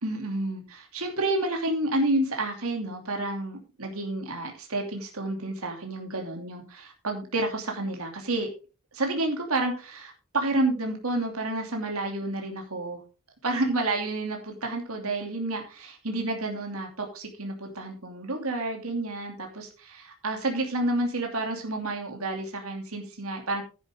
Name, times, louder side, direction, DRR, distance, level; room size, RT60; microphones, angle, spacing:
voice 1, 0.0-8.5 8.9-13.0 13.4-23.6, right 2 dB, 80° right, 2 dB, 2.8 m, -30 dB
11.5 x 10.0 x 3.7 m, 0.34 s
head